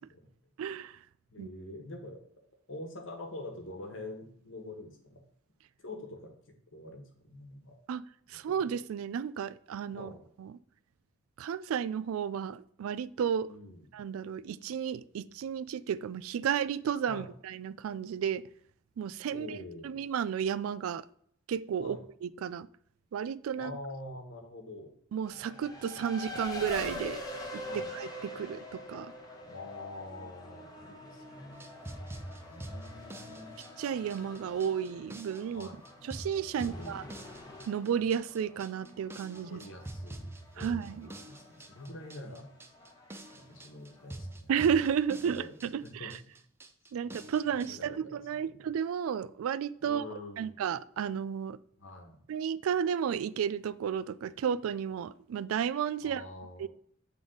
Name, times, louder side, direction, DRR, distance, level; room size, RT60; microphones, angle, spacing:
voice 1, 0.6-1.0 1.4-1.5 7.9-8.0 8.3-10.1 10.4-10.5 11.4-13.5 13.9-18.5 19.0-19.6 19.8-21.0 21.5-22.0 22.2-22.7 23.1-23.7 25.1-27.2 27.5-27.6 27.9-29.1 33.8-35.7 36.0-37.0 37.7-39.6 40.6-41.1 44.5-46.2 46.9-50.0 50.4-51.6 52.3-56.2 56.6-56.7, right 8 dB, 85° right, 0.3 m, -32 dB
voice 2, 1.3-2.2 2.7-5.2 5.8-6.3 6.7-7.8 8.3-8.5 9.9-10.3 13.5-13.8 17.1-17.3 19.3-19.9 21.8-22.1 23.5-24.9 27.6-27.9 29.4-31.7 32.5-33.6 35.5-35.8 36.6-37.1 39.3-42.5 43.3-44.5 45.2-45.5 45.8-46.1 47.1-47.2 47.5-48.7 49.8-50.5 51.8-52.2 56.0-56.7, left 2 dB, 65° left, 1.2 m, -45 dB
Race car auto racing, 25.2-44.4, left 1 dB, 20° left, 0.9 m, -45 dB
sound 1, 31.5-47.7, right 1 dB, 10° right, 0.4 m, -46 dB
7.8 x 3.5 x 3.8 m
head